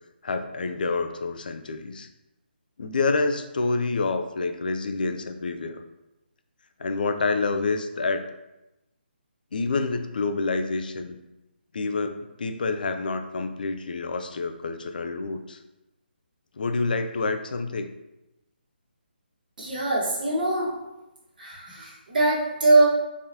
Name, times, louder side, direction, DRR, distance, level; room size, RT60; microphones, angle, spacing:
voice 1, 0.2-2.1 2.8-5.8 6.8-8.2 9.5-11.2 11.7-15.6 16.6-17.9, left 3 dB, 55° left, 8 dB, 0.4 m, -28 dB
voice 2, 19.6-20.7 21.4-22.9, right 2 dB, 50° right, -4 dB, 1.3 m, -22 dB
3.9 x 3.0 x 2.7 m, 0.96 s
figure-of-eight pair, 145°, 6 cm